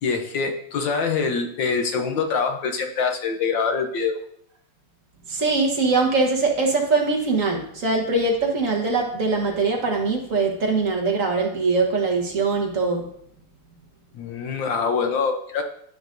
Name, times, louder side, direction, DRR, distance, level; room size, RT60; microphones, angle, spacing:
voice 1, 0.0-4.1 14.1-15.6, left 5 dB, 70° left, 4 dB, 1.5 m, -24 dB
voice 2, 5.3-13.0, right 3 dB, 45° right, 0 dB, 1.5 m, -22 dB
13.5 x 5.1 x 2.6 m, 0.68 s
omnidirectional pair, 2.3 m